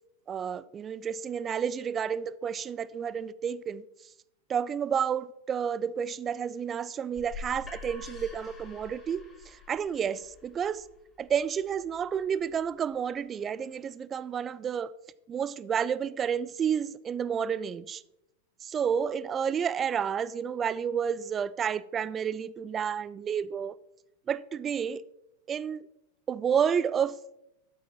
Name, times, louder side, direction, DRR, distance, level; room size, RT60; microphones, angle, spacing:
voice 1, 0.3-3.8 4.5-9.2 9.7-10.8 11.2-14.9 15.3-18.0 18.6-23.8 24.3-25.0 25.5-25.8 26.3-27.2, right 7 dB, 25° right, 0.3 m, -30 dB
sound 1, 7.1-12.9, left 3 dB, 10° left, 3.6 m, -47 dB
13.0 x 7.6 x 3.0 m
figure-of-eight pair, 90°, 0 cm